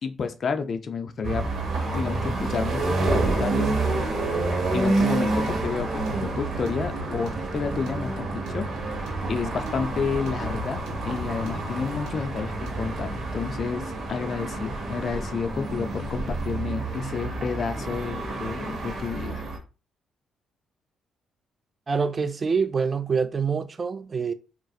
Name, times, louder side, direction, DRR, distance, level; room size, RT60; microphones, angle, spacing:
voice 1, 0.0-1.4 1.9-3.7 4.7-8.6 9.2-19.4, left 5 dB, 50° left, 0.4 m, -30 dB
sound 1, 1.2-19.6, right 2 dB, 50° right, 1.0 m, -29 dB
sound 2, 5.2-13.0, right 1 dB, 90° right, 1.0 m, -37 dB
voice 2, 21.9-24.3, right 5 dB, 35° right, 0.3 m, -25 dB
3.9 x 2.4 x 2.4 m
cardioid pair, 90°, 0 cm